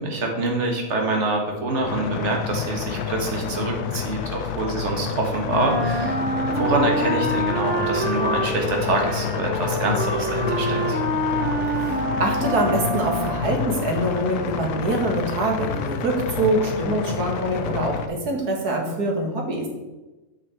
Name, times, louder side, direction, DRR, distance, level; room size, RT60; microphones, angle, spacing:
voice 1, 0.0-6.2 6.5-11.0, right 2 dB, 50° right, 1 dB, 1.8 m, -25 dB
sound 1, 1.8-18.1, left 7 dB, 80° left, 1.2 m, -29 dB
Wind instrument woodwind instrument, 5.5-13.6, right 1 dB, 10° right, 0.7 m, -27 dB
voice 2, 11.7-19.7, right 1 dB, 80° right, 1 dB, 2.3 m, -24 dB
8.5 x 6.1 x 4.4 m, 1.1 s
omnidirectional pair, 1.6 m